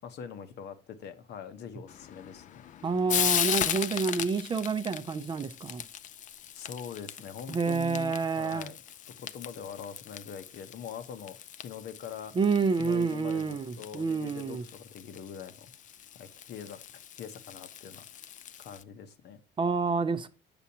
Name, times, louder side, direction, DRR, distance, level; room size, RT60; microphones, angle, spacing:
voice 1, 0.0-2.6 6.5-8.8 9.2-12.4 12.8-15.7 16.1-18.0 18.6-19.4, left 7 dB, 60° left, 0.9 m, -43 dB
Frying (food), 1.9-18.8, left 10 dB, 40° left, 0.4 m, -37 dB
voice 2, 2.8-5.8 7.5-8.7 12.4-14.6 19.6-20.3, right 4 dB, 25° right, 0.5 m, -28 dB
7.3 x 6.9 x 2.8 m
cardioid pair, 135°, 20 cm